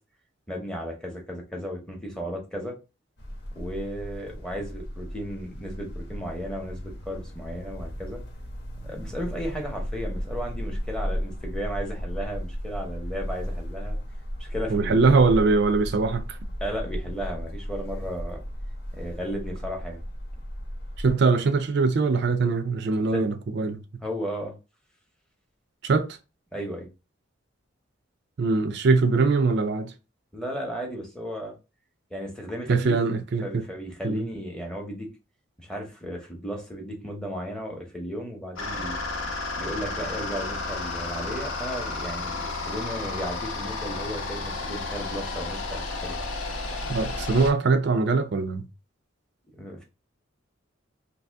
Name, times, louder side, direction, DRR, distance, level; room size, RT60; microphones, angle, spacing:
voice 1, 0.5-2.8 3.5-8.2 8.8-14.0 14.4-15.4 16.6-18.4 18.9-20.0 23.1-23.2 24.0-24.5 26.5-26.9 30.3-31.5 32.1-33.0 33.4-35.1 35.6-39.0 39.6-46.3 49.6-49.8, equal, 5° left, 0.7 m, -34 dB
sound 1, 3.2-21.1, equal, 55° left, 0.9 m, -35 dB
voice 2, 14.7-16.4 21.0-23.8 25.8-26.2 28.4-29.9 32.7-33.6 34.0-34.3 46.9-48.6, right 4 dB, 55° right, 0.4 m, -22 dB
sound 2, 38.6-47.5, left 3 dB, 80° left, 0.9 m, -32 dB
2.8 x 2.7 x 3.3 m
head